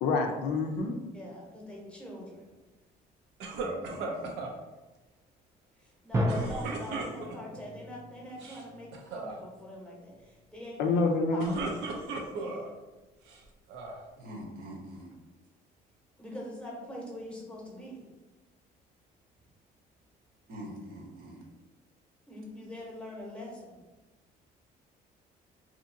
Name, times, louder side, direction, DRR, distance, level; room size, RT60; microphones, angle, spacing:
voice 1, 0.0-0.9 10.8-11.6, left 3 dB, 75° left, 3 dB, 0.4 m, -27 dB
voice 2, 1.1-2.5 5.8-11.0 11.3-11.4 11.9-12.7 16.2-18.0 22.3-23.8, left 1 dB, 5° left, -3 dB, 0.8 m, -43 dB
sound 1, 3.4-4.5 6.3-7.6 8.3-8.6 8.9-9.3 11.1-12.7 13.3-14.0, right 3 dB, 85° right, 0.5 m, -37 dB
voice 3, 3.5-4.3 14.2-15.1 20.5-21.4, right 1 dB, 60° right, -1 dB, 0.8 m, -44 dB
sound 2, 6.1-9.6, equal, 15° right, 0.3 m, -34 dB
2.7 x 2.5 x 2.6 m, 1.1 s
cardioid pair, 110°, 17 cm